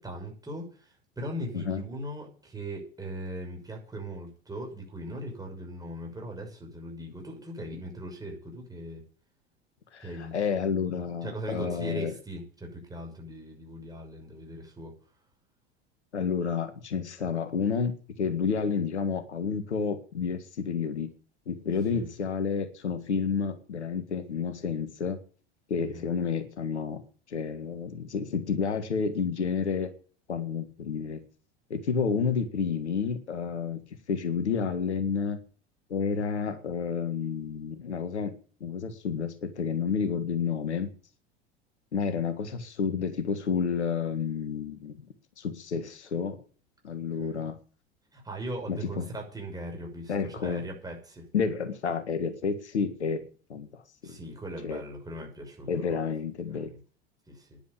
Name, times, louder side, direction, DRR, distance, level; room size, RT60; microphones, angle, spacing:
voice 1, 0.0-9.0 10.0-14.9 21.9-22.1 25.8-26.0 47.2-47.5 48.1-51.3 54.0-56.1 56.4-56.8 57.3-57.6, right 1 dB, 10° right, 1 dB, 6.4 m, -39 dB
voice 2, 9.9-12.1 16.1-17.9 18.2-21.1 21.5-25.2 25.7-27.0 27.3-29.9 30.3-31.2 31.7-33.8 34.1-35.4 35.9-38.3 38.6-40.9 41.9-45.1 45.4-46.4 46.8-47.6 48.7-49.1 50.1-50.6 51.3-54.2 54.6-54.8 55.7-56.7, left 6 dB, 80° left, 9 dB, 1.8 m, -30 dB
10.5 x 9.1 x 8.7 m, 0.41 s
figure-of-eight pair, 80°, 33 cm